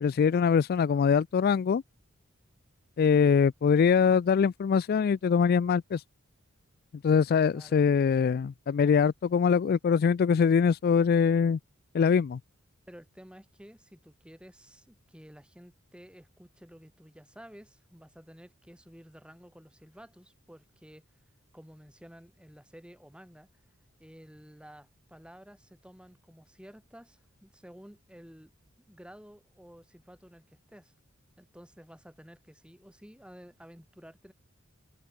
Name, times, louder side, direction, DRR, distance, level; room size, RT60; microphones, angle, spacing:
voice 1, 0.0-1.8 3.0-6.0 7.0-11.6 11.9-12.4, left 6 dB, 45° left, 0.3 m, -23 dB
voice 2, 12.9-21.0 21.5-23.6 24.0-28.5 28.8-30.9 31.4-34.3, equal, 5° right, 5.7 m, -52 dB
head